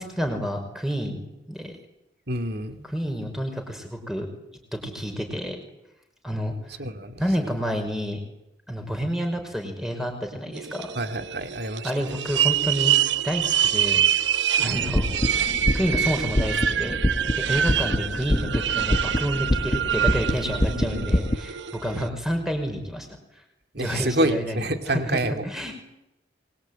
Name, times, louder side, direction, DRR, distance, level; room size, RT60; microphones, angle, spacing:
voice 1, 0.0-1.8 2.9-4.3 4.7-5.6 6.2-6.5 7.2-8.2 8.7-10.9 11.8-12.9 13.2-14.0 14.6-17.0 17.5-23.1 23.8-25.7, equal, ahead, 4 dB, 5.4 m, -29 dB
voice 2, 2.3-2.9 6.8-7.5 11.0-12.1 14.6-14.9 20.7-21.2 23.7-25.4, right 1 dB, 55° right, 7 dB, 2.5 m, -28 dB
sound 1, 10.5-22.1, right 9 dB, 75° right, 0.9 m, -26 dB
Heatbeat Normal Faster Normal, 14.7-21.4, left 1 dB, 30° left, 1.2 m, -26 dB
29.0 x 22.0 x 9.1 m, 0.91 s
head